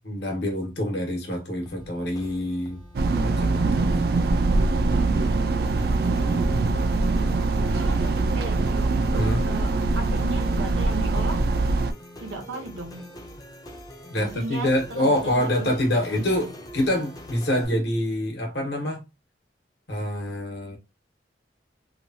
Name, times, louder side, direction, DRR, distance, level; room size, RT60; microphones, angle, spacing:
voice 1, 0.0-2.8 3.2-3.9 5.8-6.6 9.2-9.4 14.1-19.0 19.9-20.8, left 1 dB, 65° left, 1.1 m, -26 dB
sound 1, 1.7-17.7, equal, 20° left, 0.5 m, -44 dB
sound 2, 2.9-11.9, right 3 dB, 55° right, 0.3 m, -23 dB
voice 2, 5.2-5.7 7.2-8.9 9.4-11.5 12.2-13.1 14.1-16.5, right 3 dB, 90° right, 0.9 m, -36 dB
3.0 x 2.3 x 2.6 m
head